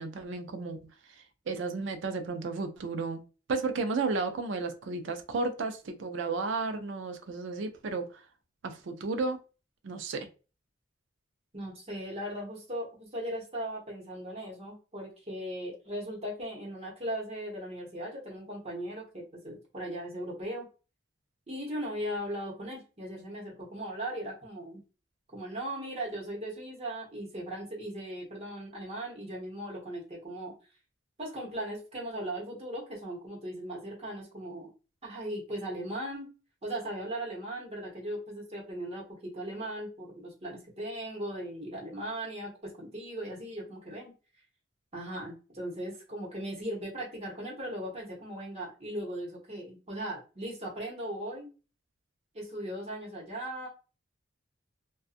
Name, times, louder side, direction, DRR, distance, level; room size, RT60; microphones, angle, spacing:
voice 1, 0.0-3.2 3.5-8.2 8.6-9.4 9.8-10.3, right 3 dB, 70° right, 7 dB, 0.4 m, -33 dB
voice 2, 11.5-20.7 21.5-24.8 25.3-30.5 31.2-34.7 35.0-36.3 36.6-44.1 44.9-51.5 52.3-53.7, right 1 dB, 30° right, -4 dB, 1.0 m, -38 dB
2.6 x 2.3 x 2.4 m, 0.34 s
head